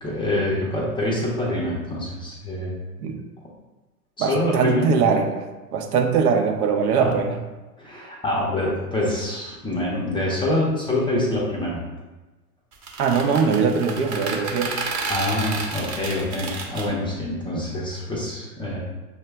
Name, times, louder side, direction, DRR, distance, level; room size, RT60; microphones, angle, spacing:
voice 1, 0.0-2.8 4.2-4.9 6.9-7.3 7.8-11.8 14.8-18.8, left 1 dB, 10° left, -4 dB, 0.5 m, -26 dB
voice 2, 4.2-7.4 13.0-14.8, right 5 dB, 70° right, 4 dB, 0.8 m, -21 dB
sound 1, 12.7-16.9, right 4 dB, 35° right, 0.9 m, -30 dB
6.1 x 2.2 x 3.3 m, 1.2 s
hypercardioid pair, 115°, 48 cm